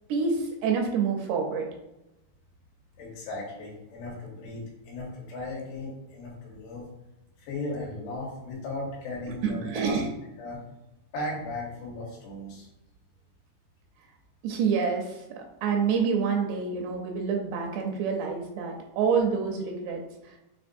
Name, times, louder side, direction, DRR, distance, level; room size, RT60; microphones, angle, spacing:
voice 1, 0.1-1.7 9.4-10.1 14.4-20.3, right 6 dB, 80° right, 1 dB, 2.5 m, -27 dB
voice 2, 3.0-6.9 7.4-10.0 10.4-10.6 11.1-12.7, left 2 dB, 75° left, -3 dB, 3.4 m, -36 dB
7.0 x 2.8 x 2.6 m, 0.93 s
omnidirectional pair, 5.0 m